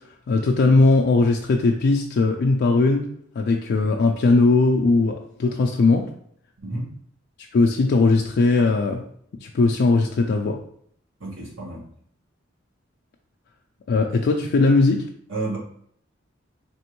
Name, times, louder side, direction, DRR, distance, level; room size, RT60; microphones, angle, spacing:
voice 1, 0.3-3.1 3.4-6.1 7.5-9.0 9.4-10.6 13.9-15.1, left 3 dB, 55° left, 1 dB, 0.3 m, -19 dB
voice 2, 6.6-6.9 11.2-11.9 15.3-15.6, right 2 dB, 70° right, -5 dB, 1.6 m, -30 dB
4.3 x 3.0 x 3.0 m, 0.64 s
head